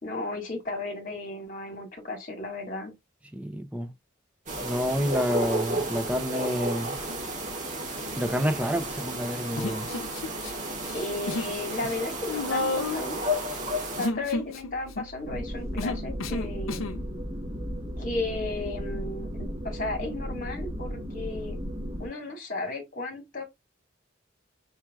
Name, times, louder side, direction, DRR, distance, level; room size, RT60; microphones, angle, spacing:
voice 1, 0.0-2.9 10.9-13.2 14.0-16.9 18.0-21.6 22.0-23.4, left 2 dB, 40° left, 1.6 m, -34 dB
voice 2, 3.3-3.9 4.6-7.0 8.2-9.9, equal, 5° right, 0.5 m, -29 dB
sound 1, 4.5-14.1, right 1 dB, 40° right, 1.8 m, -32 dB
Human voice, 9.6-10.5 10.8-11.5 11.8-17.0, left 2 dB, 85° left, 0.6 m, -32 dB
sound 2, 15.2-22.1, equal, 25° right, 1.8 m, -35 dB
4.7 x 4.5 x 2.3 m
head